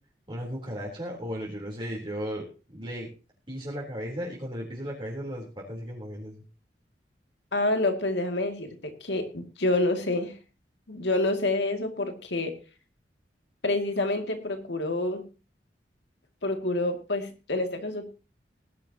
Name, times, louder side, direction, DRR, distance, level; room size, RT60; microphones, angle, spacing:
voice 1, 0.3-2.4 2.7-3.1 3.5-6.4, equal, 30° right, -4 dB, 3.7 m, -35 dB
voice 2, 7.5-10.3 10.9-12.6 13.6-15.2 16.4-18.1, left 2 dB, 85° left, 5 dB, 2.4 m, -28 dB
19.5 x 11.5 x 2.9 m, 0.33 s
head